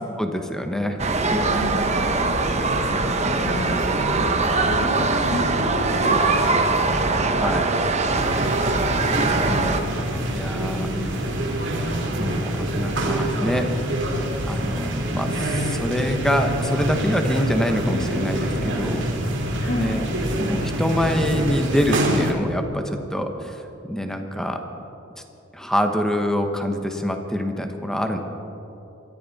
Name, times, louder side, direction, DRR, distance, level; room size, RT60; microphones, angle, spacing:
voice 1, 0.2-1.0 1.3-1.5 7.4-7.7 9.1-9.6 10.3-11.2 12.2-13.7 14.5-19.0 19.7-20.0 20.4-24.6 25.5-28.2, equal, 5° left, 5 dB, 1.1 m, -25 dB
sound 1, 1.0-9.8, right 3 dB, 35° right, 1.0 m, -22 dB
voice 2, 1.4-2.0 2.8-6.9 9.4-9.9 19.6-20.0, left 1 dB, 65° left, -2 dB, 2.7 m, -31 dB
sound 2, 8.2-22.3, right 1 dB, 65° right, 2.4 m, -25 dB
23.0 x 14.0 x 4.2 m, 2.9 s
head